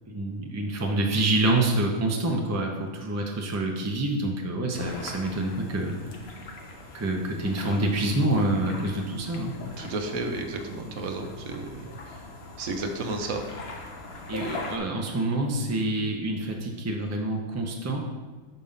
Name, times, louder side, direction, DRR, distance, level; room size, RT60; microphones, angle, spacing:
voice 1, 0.1-6.0 6.9-9.5 14.3-18.0, right 2 dB, 15° right, 1 dB, 0.6 m, -27 dB
sound 1, 4.7-14.8, left 2 dB, 50° left, 1.1 m, -41 dB
voice 2, 9.8-11.8 12.6-13.4, right 2 dB, 80° right, 4 dB, 1.2 m, -32 dB
5.6 x 5.2 x 5.5 m, 1.3 s
omnidirectional pair, 1.5 m